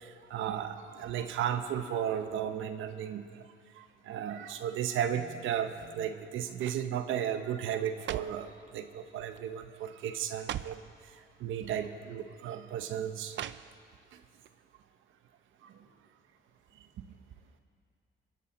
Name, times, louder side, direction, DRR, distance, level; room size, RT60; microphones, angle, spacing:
voice 1, 0.0-3.5 3.7-10.8 11.1-13.4 14.1-14.2 15.6-15.7, right 9 dB, 80° right, 9 dB, 0.9 m, -35 dB
sound 1, 5.7-6.1 6.5-6.9 7.7-8.5 9.3-9.6 9.8-9.9 10.3-10.9 11.8-11.9 13.3-14.0 14.4-14.5, right 12 dB, 65° right, 0.5 m, -41 dB
voice 2, 16.3-17.6, equal, 35° left, -2 dB, 5.3 m, -74 dB
26.5 x 11.0 x 4.2 m, 2.2 s
cardioid pair, 90°, 20 cm